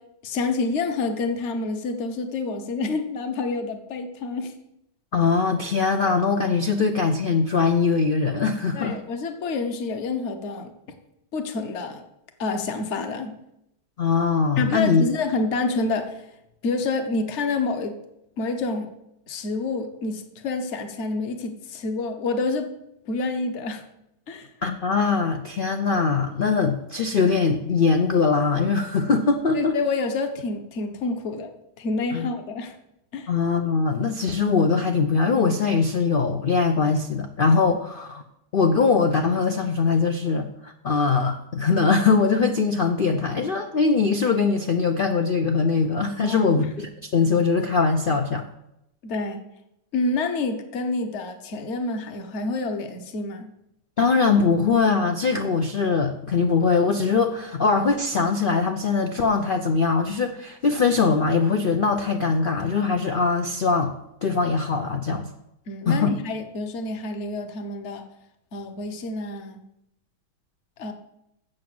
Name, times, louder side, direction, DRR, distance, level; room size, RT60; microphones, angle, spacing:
voice 1, 0.2-4.5 8.7-10.7 11.3-12.0 12.4-13.3 14.6-16.1 16.6-18.0 18.4-18.9 19.3-22.7 23.1-23.8 24.3-24.5 29.5-31.5 31.8-32.7 33.1-33.3 46.2-46.7 49.0-49.4 49.9-53.5 65.7-68.0 68.5-69.6 70.8-70.9, left 3 dB, 45° left, 6 dB, 1.3 m, -28 dB
voice 2, 5.1-9.0 14.0-15.0 24.6-29.8 32.1-32.3 33.3-38.2 38.5-48.5 54.0-63.9 64.2-65.3 65.9-66.1, left 4 dB, 80° left, 6 dB, 0.4 m, -22 dB
7.7 x 7.2 x 7.7 m, 0.82 s
omnidirectional pair, 1.8 m